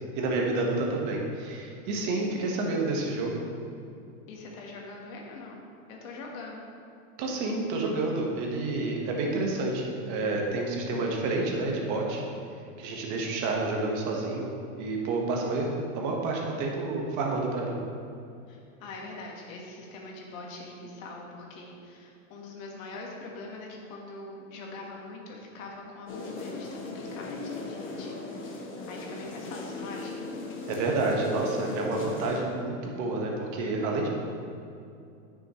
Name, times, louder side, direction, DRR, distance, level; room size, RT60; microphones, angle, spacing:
voice 1, 0.1-3.4 7.2-12.2 12.8-14.5 14.8-17.8 30.7-34.1, right 2 dB, 45° right, 0 dB, 1.5 m, -29 dB
voice 2, 4.3-5.6 5.9-6.6 18.5-28.6 28.9-30.2, left 2 dB, 75° left, -1 dB, 1.7 m, -43 dB
sound 1, 26.1-32.4, left 2 dB, 30° left, 1.1 m, -37 dB
9.1 x 6.3 x 3.2 m, 2.6 s
supercardioid pair, 125°, 40 cm